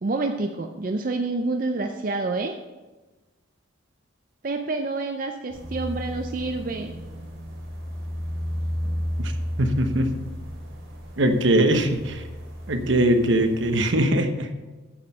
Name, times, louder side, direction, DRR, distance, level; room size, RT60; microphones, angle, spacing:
voice 1, 0.0-2.6 4.4-6.9, right 3 dB, 45° right, 4 dB, 0.5 m, -28 dB
sound 1, 5.5-13.9, equal, 90° right, 3.7 m, -33 dB
voice 2, 9.6-10.1 11.2-12.2 12.7-14.5, right 1 dB, 70° right, 6 dB, 1.0 m, -21 dB
9.8 x 6.4 x 5.5 m, 1.2 s
head